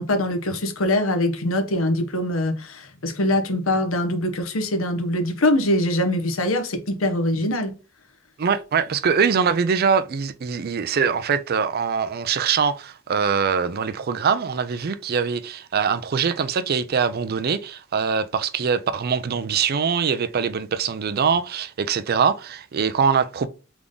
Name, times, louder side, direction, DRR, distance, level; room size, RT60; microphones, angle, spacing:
voice 1, 0.0-7.7, left 1 dB, 75° left, 1.0 m, -23 dB
voice 2, 8.4-23.5, right 6 dB, 50° right, 0.4 m, -23 dB
3.6 x 3.6 x 3.7 m
head